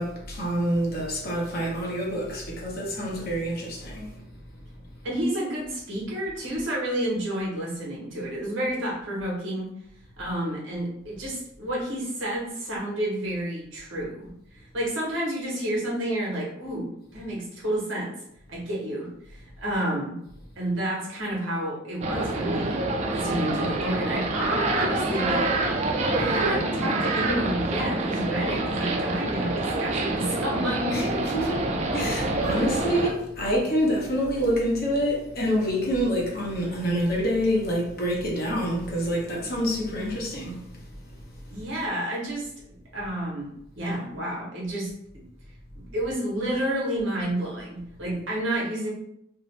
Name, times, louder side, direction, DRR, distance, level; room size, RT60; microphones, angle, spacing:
voice 1, 0.0-4.2 30.9-41.6, equal, 50° left, 0.8 m, -27 dB
voice 2, 5.0-9.7 10.2-18.1 18.5-20.2 20.6-22.8 23.1-25.5 26.2-31.2 41.5-42.5 42.9-44.9 45.7-48.9, right 1 dB, 70° right, 1.0 m, -30 dB
sound 1, 22.0-33.1, right 2 dB, 35° right, 0.3 m, -26 dB
2.6 x 2.0 x 3.1 m
head